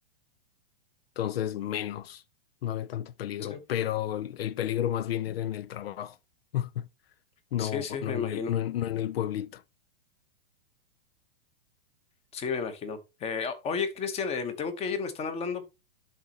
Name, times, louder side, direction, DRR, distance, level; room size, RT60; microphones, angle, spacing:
voice 1, 1.2-2.2 2.6-6.2 6.5-6.9 7.5-9.6, left 11 dB, 85° left, 0.6 m, -31 dB
voice 2, 7.6-8.5 12.3-15.6, left 5 dB, 20° left, 1.1 m, -32 dB
12.0 x 4.1 x 2.9 m
hypercardioid pair, 140°, 29 cm